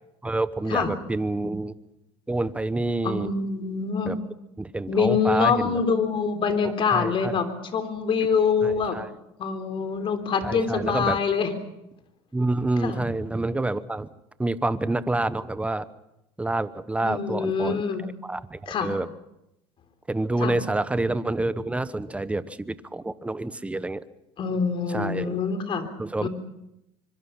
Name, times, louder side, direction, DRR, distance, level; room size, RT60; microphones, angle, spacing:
voice 1, 0.2-1.7 2.3-3.3 4.1-4.2 4.6-5.8 6.9-7.3 8.6-9.1 10.4-11.2 12.3-14.1 14.4-15.8 16.4-17.8 18.2-19.1 20.1-24.0 24.9-25.4 26.0-26.3, right 2 dB, 10° right, 14 dB, 1.1 m, -27 dB
voice 2, 3.0-4.2 4.9-7.5 7.7-9.0 9.4-11.5 12.8-13.0 17.0-18.0 18.7-18.9 20.4-20.5 24.4-25.9 26.2-26.3, left 5 dB, 40° left, 7 dB, 3.6 m, -25 dB
25.0 x 23.0 x 5.8 m, 0.88 s
supercardioid pair, 90°, 13 cm